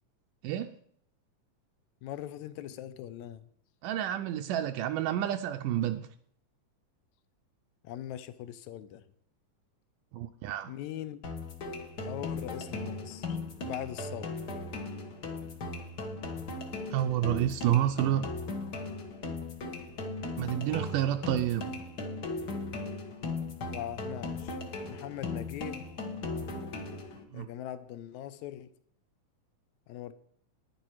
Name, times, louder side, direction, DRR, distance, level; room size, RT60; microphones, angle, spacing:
voice 1, 2.0-3.5 7.8-9.0 10.7-11.2 12.0-14.4 23.7-24.6 24.9-25.8 27.3-28.7 29.9-30.1, left 12 dB, 75° left, 13 dB, 1.8 m, -41 dB
voice 2, 3.8-6.1 10.1-10.7 16.9-18.3 20.4-21.7 27.3-27.5, right 12 dB, 80° right, 6 dB, 2.1 m, -29 dB
sound 1, 11.2-27.2, left 3 dB, 50° left, 1.2 m, -38 dB
10.5 x 10.5 x 4.7 m, 0.63 s
omnidirectional pair, 3.8 m